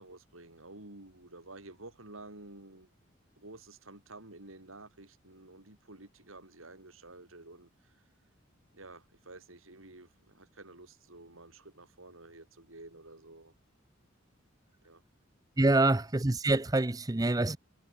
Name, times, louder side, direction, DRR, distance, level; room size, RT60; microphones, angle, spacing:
voice 1, 0.0-2.9 3.4-8.0 8.7-13.5 14.8-15.0 15.6-15.9, right 2 dB, 90° right, 4.8 m, -51 dB
voice 2, 15.6-17.6, right 2 dB, 20° right, 0.6 m, -26 dB
head